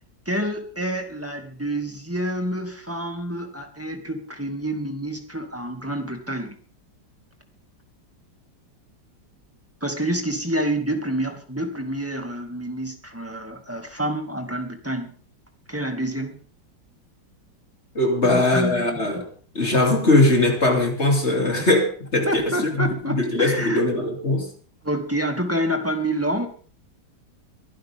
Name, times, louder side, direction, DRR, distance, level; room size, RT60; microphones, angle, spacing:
voice 1, 0.3-6.6 9.8-15.2 15.7-16.4 18.2-19.2 21.6-21.7 22.2-23.8 24.8-26.5, right 1 dB, 5° right, 4 dB, 2.2 m, -28 dB
voice 2, 18.0-19.3 19.6-24.5, left 2 dB, 35° left, 2 dB, 3.5 m, -20 dB
23.5 x 11.5 x 3.7 m, 0.41 s
omnidirectional pair, 2.0 m